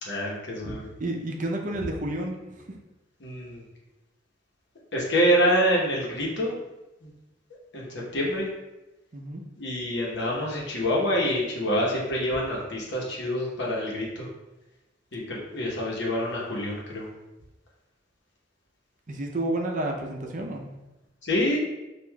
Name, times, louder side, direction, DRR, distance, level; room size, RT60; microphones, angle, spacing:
voice 1, 0.0-0.9 3.2-3.6 4.9-6.5 7.0-7.1 7.7-8.5 9.5-14.3 15.1-17.1 21.2-21.6, equal, 75° left, -3 dB, 1.0 m, -26 dB
voice 2, 1.0-2.4 9.1-9.4 19.1-20.7, right 1 dB, 45° right, 1 dB, 0.6 m, -30 dB
6.3 x 2.5 x 2.3 m, 1.0 s
head